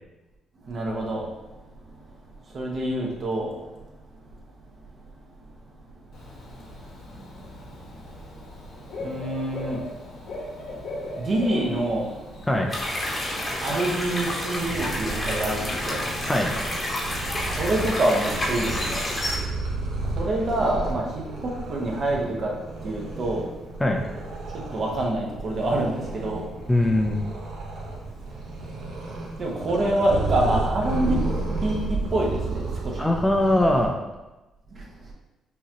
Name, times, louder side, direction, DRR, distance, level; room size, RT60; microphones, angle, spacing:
voice 1, 0.7-1.2 2.5-3.5 9.0-9.8 11.2-12.1 13.6-16.0 17.5-19.0 20.2-22.5 22.8-23.4 24.7-26.4 29.4-32.9, right 1 dB, 50° right, -2 dB, 1.1 m, -26 dB
Bird / Cricket, 6.1-14.8, left 2 dB, 75° left, 1.4 m, -39 dB
sound 1, 12.7-19.4, left 1 dB, 30° left, 1.0 m, -29 dB
Purr, 14.5-33.9, right 3 dB, 85° right, 1.0 m, -32 dB
voice 2, 26.7-27.2 33.0-34.0, left 1 dB, 10° left, 2 dB, 0.5 m, -21 dB
5.5 x 2.8 x 2.9 m, 1.1 s
cardioid pair, 90°, 0 cm